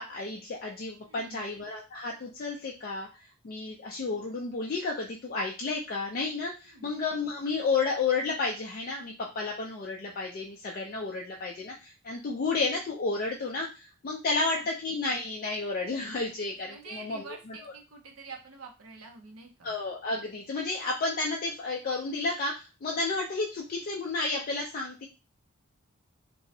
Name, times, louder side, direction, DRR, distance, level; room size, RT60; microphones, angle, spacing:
voice 1, 0.0-3.1 3.4-17.7 19.6-25.1, left 3 dB, 45° left, -1 dB, 0.3 m, -32 dB
voice 2, 1.1-1.5 6.7-6.9 14.5-14.7 16.7-19.7, right 4 dB, 75° right, 3 dB, 0.6 m, -47 dB
2.6 x 2.0 x 2.6 m, 0.30 s
head